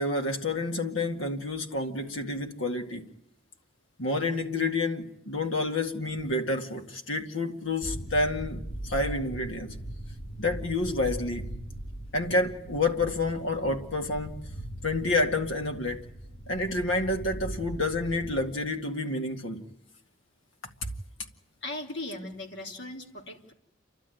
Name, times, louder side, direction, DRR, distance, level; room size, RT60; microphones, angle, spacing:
voice 1, 0.0-3.1 4.0-9.7 10.4-11.5 12.1-14.4 14.8-16.0 16.5-19.6, left 2 dB, 85° left, 2.1 m, -29 dB
sound 1, 7.8-18.5, right 1 dB, 35° left, 5.5 m, -40 dB
voice 2, 21.6-23.5, left 2 dB, 60° left, 3.2 m, -38 dB
29.5 x 12.0 x 9.2 m
head